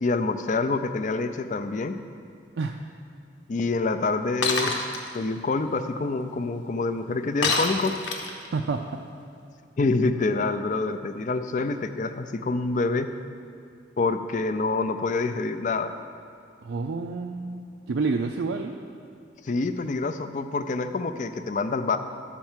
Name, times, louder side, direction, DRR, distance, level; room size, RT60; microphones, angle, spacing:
voice 1, 0.0-2.0 3.5-4.7 5.1-8.0 9.8-13.1 14.0-15.9 19.4-22.0, left 3 dB, 45° left, 9 dB, 0.4 m, -26 dB
Shatter, 4.4-5.0 7.4-8.5, left 4 dB, 90° left, 1.0 m, -25 dB
voice 2, 8.5-9.0 16.6-18.8, right 4 dB, 85° right, 3 dB, 0.4 m, -29 dB
11.5 x 4.5 x 7.3 m, 2.4 s
head